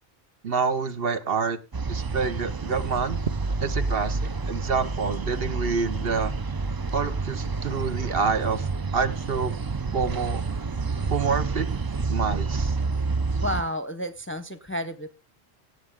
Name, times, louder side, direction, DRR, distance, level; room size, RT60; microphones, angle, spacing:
voice 1, 0.4-1.6 1.9-3.2 3.6-6.3 6.9-9.5 9.9-10.4 11.1-12.8, right 5 dB, 60° right, 1.2 m, -27 dB
sound 1, 1.7-13.6, right 4 dB, 35° right, 0.3 m, -29 dB
voice 2, 13.4-15.1, equal, 15° left, 0.7 m, -31 dB
17.5 x 7.5 x 3.6 m
omnidirectional pair, 1.1 m